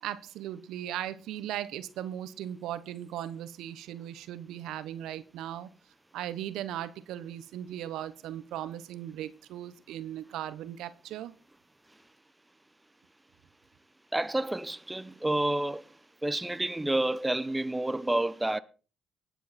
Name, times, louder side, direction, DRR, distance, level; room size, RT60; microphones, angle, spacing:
voice 1, 0.0-5.7 6.1-11.3, right 11 dB, 70° right, 1.1 m, -38 dB
voice 2, 14.1-15.9 16.2-18.6, right 1 dB, 15° right, 0.9 m, -29 dB
19.0 x 8.4 x 4.3 m
hypercardioid pair, 50°, 0 cm